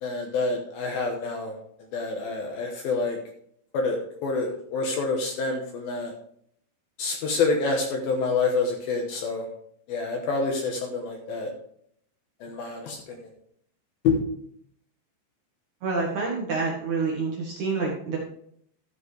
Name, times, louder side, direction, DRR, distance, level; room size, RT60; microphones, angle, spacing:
voice 1, 0.0-1.5 1.8-3.2 3.7-6.1 7.0-9.5 9.9-11.5 12.4-13.3 14.0-14.2, left 4 dB, 70° left, 2 dB, 2.4 m, -27 dB
voice 2, 15.8-18.2, right 4 dB, 70° right, -2 dB, 1.8 m, -27 dB
13.0 x 8.4 x 3.3 m, 0.67 s
omnidirectional pair, 5.5 m